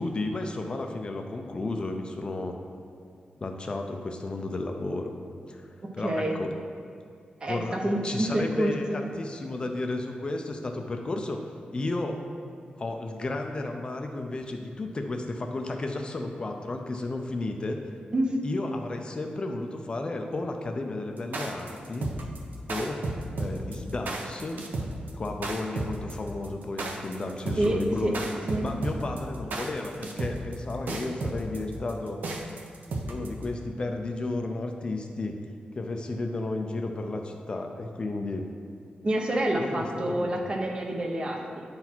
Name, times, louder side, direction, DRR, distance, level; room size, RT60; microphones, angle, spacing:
voice 1, 0.0-2.5 3.4-5.1 5.5-6.5 7.5-7.8 8.0-11.4 11.7-12.2 12.8-17.8 18.4-22.1 22.7-23.0 23.4-24.6 25.1-28.2 28.6-32.2 33.1-35.4 35.7-38.4 39.6-40.3, left 2 dB, 30° left, 4 dB, 0.5 m, -33 dB
voice 2, 6.0-6.4 7.4-9.0 18.1-18.4 27.6-28.1 28.5-28.7 39.0-41.6, right 1 dB, 30° right, 1 dB, 0.8 m, -27 dB
sound 1, 21.2-33.4, right 2 dB, 70° right, 0.7 m, -33 dB
9.4 x 4.0 x 4.4 m, 2.4 s
wide cardioid pair, 165°, 3 cm